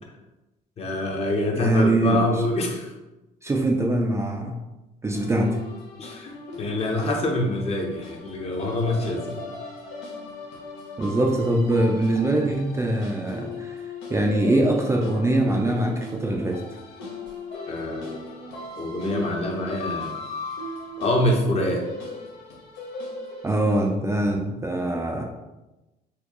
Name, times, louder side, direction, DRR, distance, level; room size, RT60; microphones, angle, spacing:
voice 1, 0.8-2.9 6.0-6.3 6.6-9.4 17.7-18.2 18.8-20.2 21.0-21.8, left 1 dB, 40° left, 1 dB, 0.8 m, -25 dB
voice 2, 1.6-2.4 3.4-4.5 5.0-5.6 11.0-13.8 14.1-16.6 23.4-25.2, right 1 dB, 15° right, 0 dB, 0.4 m, -23 dB
sound 1, 5.1-23.9, left 2 dB, 85° left, 0.8 m, -38 dB
4.2 x 2.3 x 2.9 m, 1.0 s
cardioid pair, 110°, 17 cm